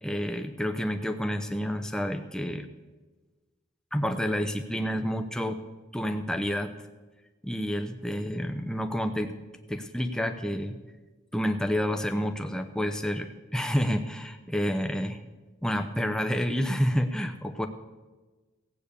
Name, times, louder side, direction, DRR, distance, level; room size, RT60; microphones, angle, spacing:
voice 1, 0.0-2.7 3.9-5.6 5.9-6.7 7.4-9.3 9.7-10.8 11.3-15.2 15.6-17.7, equal, 5° left, 7 dB, 0.7 m, -29 dB
16.5 x 8.6 x 6.8 m, 1.2 s
head